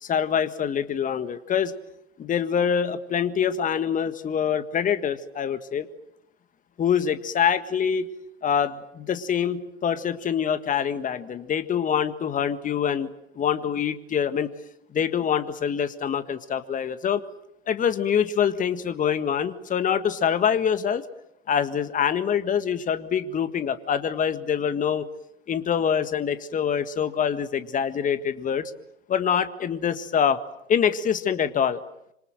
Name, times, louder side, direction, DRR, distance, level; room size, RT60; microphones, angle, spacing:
voice 1, 0.0-1.7 2.2-5.9 6.8-8.1 8.4-14.5 14.9-17.2 17.7-21.0 21.5-25.1 25.5-28.6 29.1-30.4 30.7-31.8, left 8 dB, 20° left, 11 dB, 1.7 m, -25 dB
26.5 x 26.0 x 7.8 m, 0.79 s
hypercardioid pair, 105°, 38 cm